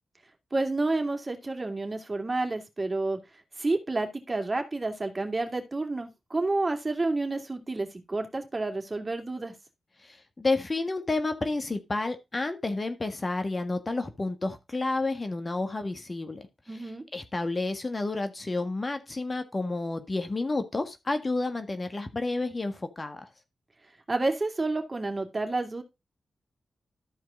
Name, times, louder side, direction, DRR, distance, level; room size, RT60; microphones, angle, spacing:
voice 1, 0.5-3.2 3.6-9.5 16.7-17.0 24.1-25.8, right 2 dB, 35° right, 2.6 m, -30 dB
voice 2, 10.0-16.4 16.7-23.3, left 2 dB, 35° left, 1.7 m, -30 dB
13.5 x 4.8 x 3.8 m
supercardioid pair, 40°, 0 cm